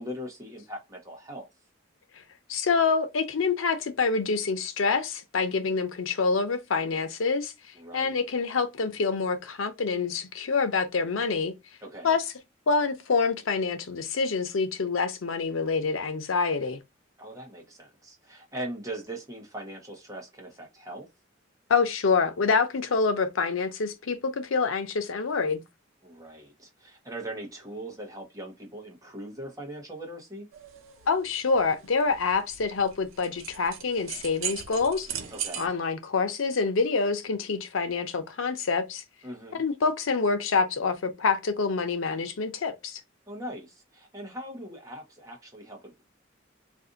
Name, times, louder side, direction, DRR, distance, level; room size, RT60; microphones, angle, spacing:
voice 1, 0.0-1.5 7.7-8.2 11.8-12.2 17.2-21.1 26.0-30.5 35.3-35.7 39.2-39.6 43.3-46.0, right 1 dB, 15° right, 0.9 m, -40 dB
voice 2, 2.5-7.5 7.9-11.5 12.0-12.2 12.7-16.8 21.7-25.6 31.1-35.1 35.6-39.0 39.6-43.0, left 4 dB, 90° left, 0.6 m, -26 dB
sound 1, 30.5-35.7, right 9 dB, 90° right, 0.7 m, -39 dB
2.6 x 2.5 x 3.7 m
head